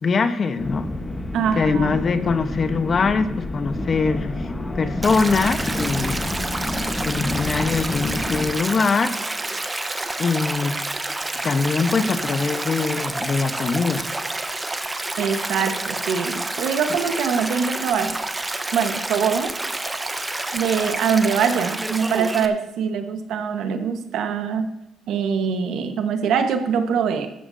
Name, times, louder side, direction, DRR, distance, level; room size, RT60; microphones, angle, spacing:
voice 1, 0.0-0.9 1.6-4.5 4.7-6.2 7.0-9.1 10.2-10.8 11.4-14.1, left 4 dB, 45° left, 9 dB, 1.1 m, -22 dB
sound 1, 0.6-8.5, left 1 dB, 20° left, 1.2 m, -29 dB
voice 2, 1.3-2.0 15.2-18.2 18.7-19.5 20.5-24.7 25.1-27.3, right 6 dB, 80° right, 6 dB, 1.4 m, -23 dB
Stream, 5.0-22.5, right 2 dB, 15° right, 1.1 m, -29 dB
14.5 x 12.5 x 2.8 m, 0.93 s
cardioid pair, 90°, 0 cm